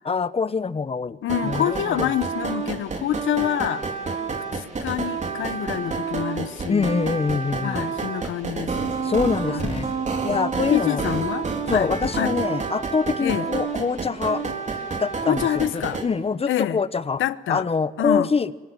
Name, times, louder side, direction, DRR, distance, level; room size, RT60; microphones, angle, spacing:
voice 1, 0.0-1.2 1.4-2.1 6.7-7.8 9.0-9.9 10.2-11.0 11.7-14.4 15.0-17.2 17.5-18.5, left 5 dB, 30° left, 15 dB, 1.1 m, -24 dB
voice 2, 1.2-3.8 4.5-6.9 7.6-8.9 9.4-9.7 10.2-10.4 10.7-12.4 13.2-13.5 15.2-16.0 16.5-16.8 17.2-17.7 18.0-18.3, left 12 dB, 80° left, 15 dB, 1.1 m, -27 dB
sound 1, 1.3-16.1, right 4 dB, 35° right, 4.2 m, -29 dB
26.0 x 23.5 x 9.4 m, 1.2 s
cardioid pair, 90°, 20 cm